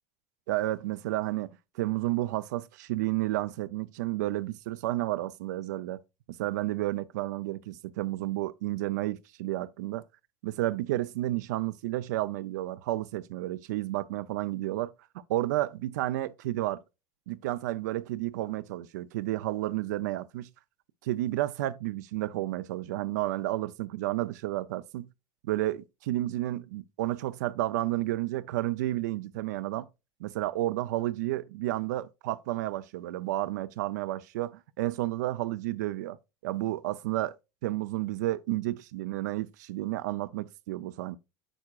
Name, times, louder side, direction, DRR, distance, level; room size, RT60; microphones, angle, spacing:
voice 1, 0.5-1.5 1.8-6.0 6.3-10.0 10.4-14.9 15.3-16.8 17.3-20.5 21.0-25.1 25.4-29.9 30.2-36.2 36.4-37.3 37.6-41.2, right 16 dB, 90° right, 0.4 m, -31 dB
8.9 x 4.8 x 2.3 m
supercardioid pair, 140°, 9 cm